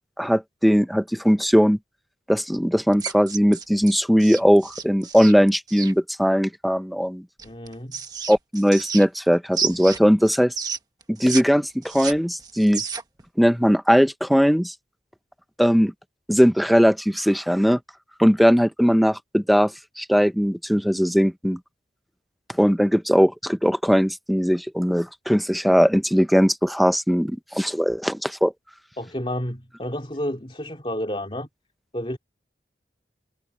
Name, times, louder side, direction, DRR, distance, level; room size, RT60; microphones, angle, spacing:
voice 1, 0.2-1.8 2.3-7.2 8.3-10.5 11.2-12.8 13.4-14.7 15.6-15.9 16.3-17.8 18.2-21.6 22.6-28.5, equal, ahead, 0.7 m, -19 dB
sound 1, 2.9-5.9 7.4-9.3 9.5-11.4 11.7-13.2, right 6 dB, 20° right, 1.3 m, -31 dB
voice 2, 7.4-8.0 29.0-31.5 31.9-32.2, left 1 dB, 30° left, 3.2 m, -30 dB
head